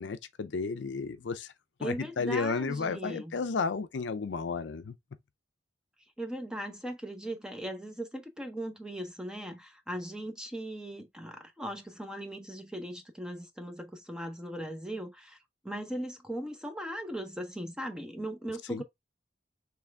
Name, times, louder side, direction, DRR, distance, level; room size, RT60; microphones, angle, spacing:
voice 1, 0.0-1.5 1.8-5.0 18.7-18.8, left 4 dB, 75° left, 0.5 m, -33 dB
voice 2, 1.8-3.3 6.2-15.4 15.6-18.8, right 1 dB, 5° right, 0.6 m, -38 dB
3.6 x 3.2 x 3.3 m
head